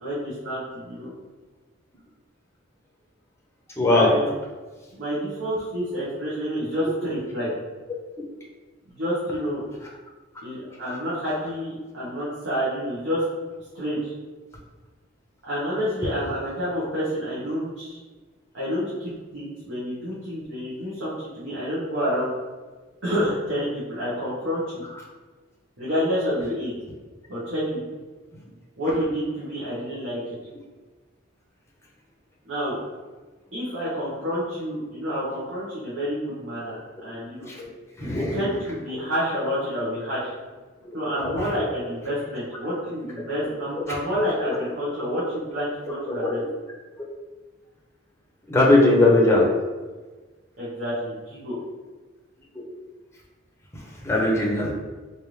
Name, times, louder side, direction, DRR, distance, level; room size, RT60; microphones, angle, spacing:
voice 1, 0.0-1.1 3.8-4.3 4.9-7.5 8.9-9.6 10.4-13.2 13.7-14.1 15.4-18.0 18.5-22.3 23.0-24.8 25.8-26.7 27.3-27.8 28.8-30.3 32.4-32.8 33.5-37.5 38.0-40.3 40.9-46.4 50.6-51.6, equal, 70° right, -10 dB, 1.1 m, -28 dB
voice 2, 3.8-4.1 10.3-10.4 10.8-11.0 37.5-37.7 38.0-38.6 40.8-41.5 43.2-43.3 43.8-43.9 44.4-44.6 46.1-46.3 48.5-49.5 53.7-54.7, left 2 dB, 15° left, -3 dB, 0.6 m, -20 dB
3.4 x 2.6 x 3.1 m, 1.3 s
head